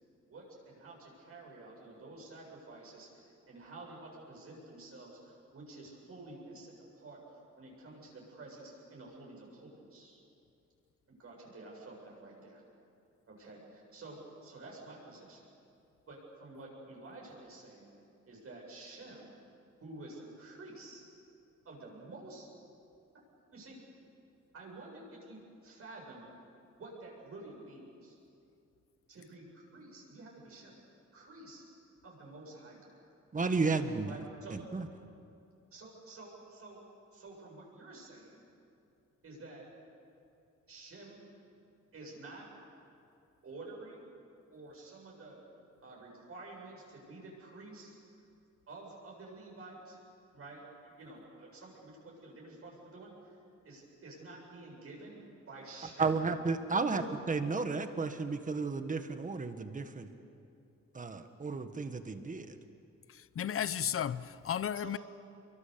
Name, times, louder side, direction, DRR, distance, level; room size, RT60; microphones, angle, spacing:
voice 1, 0.3-7.2 7.6-10.2 11.1-12.6 13.3-15.4 16.1-17.9 18.3-19.3 19.8-21.0 21.6-22.5 23.5-23.8 24.5-26.3 26.8-28.2 29.1-31.6 32.0-33.0 34.0-34.6 35.7-36.8 37.1-38.4 39.2-39.6 40.7-41.2 41.9-42.5 43.4-44.1 44.5-45.4 45.8-48.0 48.7-50.0 50.3-53.4 53.6-56.2 56.8-57.0 64.7-64.9, right 2 dB, 50° right, 7.8 m, -50 dB
voice 2, 33.3-34.1 34.5-34.9 56.0-57.0 57.3-60.1 60.9-62.6, right 4 dB, 25° right, 1.5 m, -33 dB
voice 3, 63.1-65.0, left 9 dB, 50° left, 0.7 m, -34 dB
29.0 x 23.5 x 7.0 m
wide cardioid pair, 150°, 29 cm